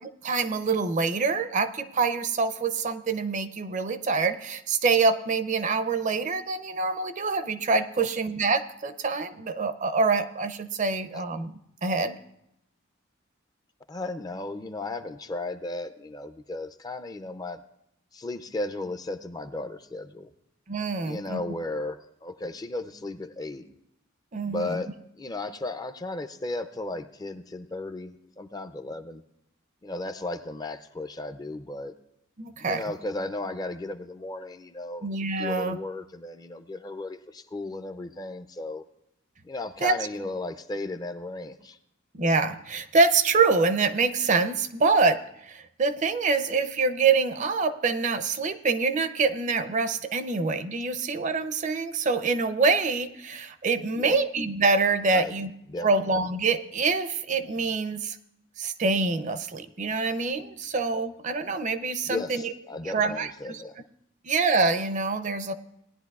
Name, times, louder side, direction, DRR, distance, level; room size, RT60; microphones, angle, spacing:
voice 1, 0.2-11.5 11.8-12.2 20.7-21.4 24.3-24.8 32.4-32.8 35.0-35.8 39.8-39.9 42.1-45.2 45.5-55.5 55.8-58.2 58.6-62.5 62.9-63.6 64.2-65.5, right 4 dB, 40° right, 10 dB, 0.5 m, -25 dB
voice 2, 13.9-17.6 18.1-20.3 21.0-23.7 24.4-24.9 25.1-29.2 29.8-31.9 32.6-35.1 35.4-38.8 39.4-41.8 53.9-54.2 55.1-55.3 55.7-55.9 62.1-63.8, left 2 dB, 20° left, 9 dB, 0.4 m, -35 dB
18.5 x 10.5 x 2.3 m, 0.79 s
head